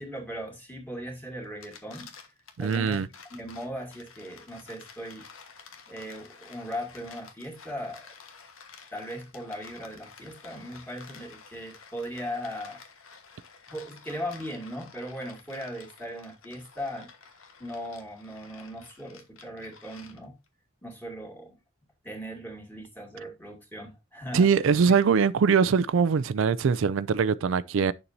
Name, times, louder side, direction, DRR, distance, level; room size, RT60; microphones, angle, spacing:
voice 1, 0.0-2.1 2.6-3.0 3.3-5.3 5.9-8.1 8.9-12.8 13.7-17.1 17.6-20.4 20.8-21.5 22.0-24.5, equal, 10° left, 2.2 m, -38 dB
sound 1, 1.4-20.5, left 5 dB, 85° left, 1.4 m, -51 dB
voice 2, 2.6-3.1 24.3-27.9, right 6 dB, 70° right, 0.4 m, -22 dB
9.0 x 6.9 x 2.7 m
head